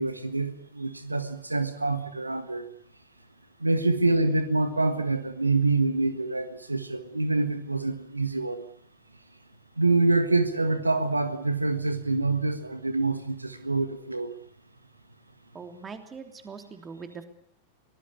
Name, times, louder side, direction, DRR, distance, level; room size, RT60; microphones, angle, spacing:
voice 1, 0.0-2.6 3.6-8.6 9.8-14.3, right 3 dB, 85° right, 11 dB, 1.5 m, -26 dB
voice 2, 15.5-17.2, right 5 dB, 20° right, 7 dB, 3.2 m, -42 dB
24.0 x 18.5 x 8.6 m, 0.66 s
figure-of-eight pair, 90°, 0 cm